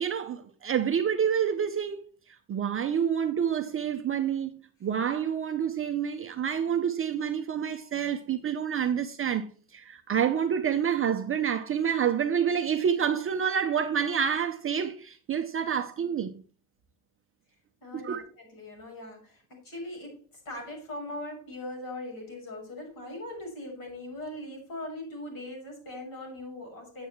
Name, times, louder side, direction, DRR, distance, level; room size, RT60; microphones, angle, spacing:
voice 1, 0.0-2.0 2.5-9.5 9.7-16.4 18.0-18.2, right 8 dB, 30° right, 0.6 m, -28 dB
voice 2, 17.8-20.2 20.4-27.1, left 1 dB, 45° left, 6.3 m, -40 dB
9.1 x 8.4 x 4.5 m
cardioid pair, 160°, 47 cm